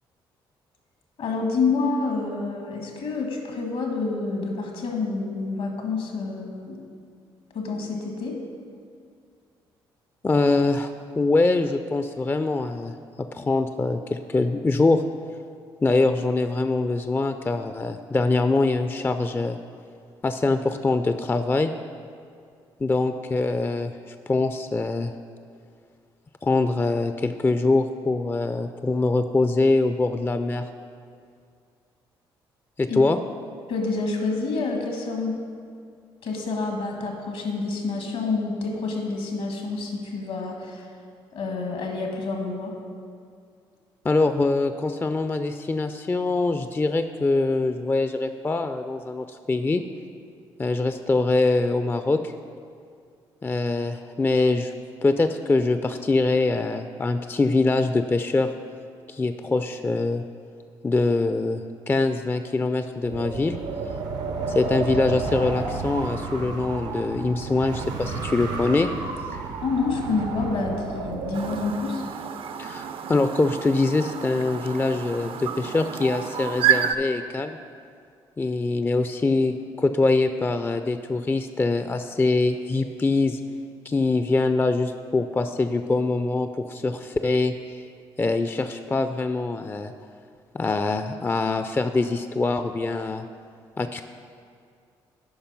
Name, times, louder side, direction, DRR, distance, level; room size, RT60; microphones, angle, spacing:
voice 1, 1.2-6.8 7.5-8.4 32.9-33.0 33.7-35.4 36.2-40.9 41.3-42.7 69.6-72.0, left 4 dB, 70° left, 2 dB, 1.5 m, -28 dB
voice 2, 10.2-12.9 13.2-15.0 15.8-19.6 20.2-21.7 22.8-25.1 26.4-30.7 32.8-33.2 44.0-49.8 50.6-52.3 53.4-54.7 55.0-58.5 59.1-60.2 60.8-61.6 61.9-63.6 64.5-68.9 69.3-69.4 72.6-77.6 78.4-83.4 83.9-87.9 88.2-89.9 90.5-93.2 93.8-94.0, left 3 dB, 20° left, 9 dB, 0.4 m, -23 dB
Wind, 63.0-71.7, right 4 dB, 80° right, 0.8 m, -31 dB
Chirp tweet, 71.3-77.0, right 9 dB, 55° right, 0.5 m, -29 dB
8.7 x 5.4 x 5.4 m, 2.2 s
hypercardioid pair, 55°, 11 cm